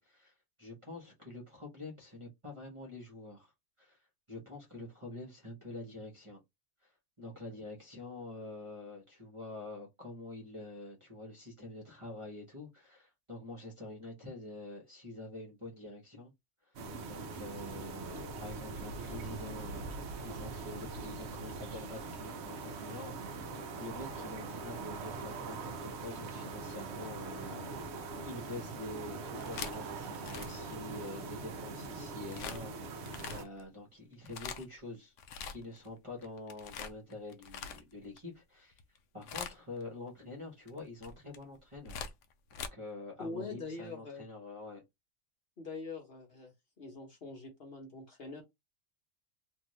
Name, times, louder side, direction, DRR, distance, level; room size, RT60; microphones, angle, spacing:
voice 1, 0.0-3.5 3.8-4.0 4.3-6.4 6.8-6.9 7.2-16.3 16.6-16.8 17.1-35.1 35.5-38.8 39.1-42.0 42.7-44.8, left 2 dB, 25° right, 0.8 m, -46 dB
sound 1, 16.8-33.5, right 3 dB, 60° right, 0.7 m, -42 dB
Laughter / Crowd, 28.8-32.3, right 10 dB, 80° right, 1.0 m, -51 dB
sound 2, 29.4-31.4 32.3-32.6 33.1-33.6 34.1-34.8 35.2-35.9 36.2-38.2 38.7-39.0 39.2-39.8 40.7-42.7, left 7 dB, 70° left, 0.8 m, -43 dB
voice 2, 43.2-44.2 45.6-46.5 46.8-48.4, left 3 dB, 45° left, 1.1 m, -43 dB
2.6 x 2.6 x 3.1 m
omnidirectional pair, 1.5 m